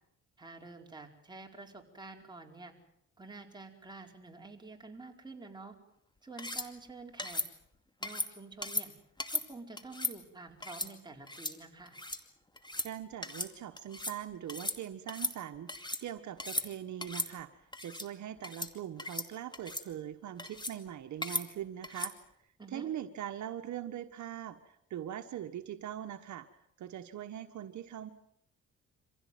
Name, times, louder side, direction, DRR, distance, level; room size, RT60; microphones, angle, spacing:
voice 1, 0.4-2.7 3.2-5.7 6.2-7.4 8.0-8.9 9.3-12.0 22.6-22.9, right 3 dB, 15° right, 2 dB, 4.7 m, -48 dB
sound 1, 6.4-6.7 7.2-7.5 8.0-8.3 8.6-8.9 9.2-9.5 9.8-10.1 10.6-10.9 11.3-11.5 11.9-12.2 12.6-12.9 13.2-13.5 13.8-14.2 14.5-14.8 15.1-16.0 16.4-16.7 17.0-17.3 17.7-18.1 18.4-18.7 19.0-19.3 19.5-19.8 20.4-20.8 21.2-21.4 21.8-22.1, left 2 dB, 15° left, 2.5 m, -36 dB
voice 2, 12.8-22.1 22.7-26.5 26.8-28.1, right 11 dB, 70° right, 7 dB, 1.4 m, -42 dB
25.5 x 16.0 x 9.3 m, 0.77 s
cardioid pair, 90°, 30 cm